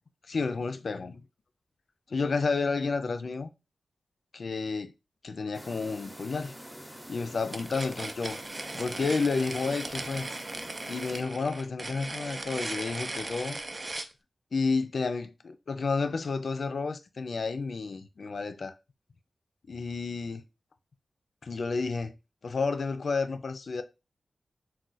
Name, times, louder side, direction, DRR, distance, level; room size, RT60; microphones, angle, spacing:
voice 1, 0.3-1.2 2.1-3.5 4.3-4.9 5.2-6.5 7.1-8.4 8.7-10.3 10.9-13.6 14.5-18.7 19.7-20.4 21.4-22.1 22.4-23.8, left 4 dB, 70° left, 0.3 m, -31 dB
sound 1, 5.5-11.2, equal, 5° right, 0.7 m, -46 dB
sound 2, 7.5-14.1, right 2 dB, 40° right, 0.4 m, -38 dB
2.4 x 2.2 x 3.9 m
cardioid pair, 65°, 0 cm